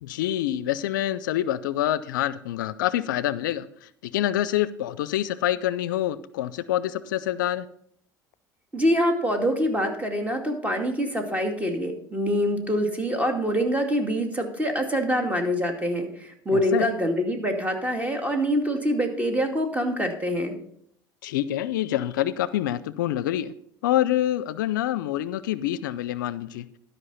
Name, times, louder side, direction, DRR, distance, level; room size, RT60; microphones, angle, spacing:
voice 1, 0.0-7.7 16.5-16.9 21.2-23.5 23.8-26.7, left 12 dB, 85° left, 17 dB, 0.4 m, -26 dB
voice 2, 8.7-20.6, equal, 15° right, 4 dB, 2.3 m, -25 dB
12.5 x 5.4 x 5.6 m, 0.67 s
hypercardioid pair, 70°, 10 cm